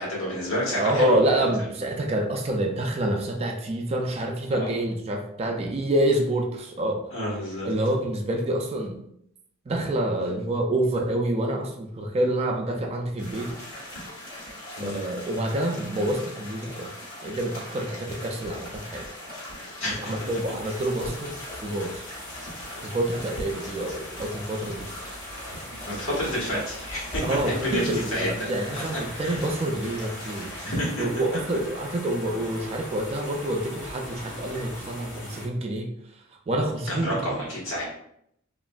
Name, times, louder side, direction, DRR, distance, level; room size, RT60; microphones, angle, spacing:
voice 1, 0.0-1.5 4.5-4.7 7.1-7.7 14.8-15.0 19.8-20.1 25.7-28.8 29.2-29.4 30.6-31.0 36.9-37.8, equal, 65° left, -5 dB, 1.3 m, -29 dB
voice 2, 0.7-7.1 7.6-9.1 9.7-13.5 14.8-16.9 17.2-19.1 19.9-21.3 21.6-22.0 22.8-24.9 26.1-26.2 27.2-30.5 31.0-35.9 36.5-37.3, right 1 dB, 30° right, 2 dB, 0.3 m, -27 dB
sound 1, 13.2-30.7, left 1 dB, 85° left, 1.2 m, -40 dB
sound 2, 20.2-35.5, left 1 dB, 35° left, 1.2 m, -41 dB
3.0 x 2.5 x 2.3 m, 0.72 s
head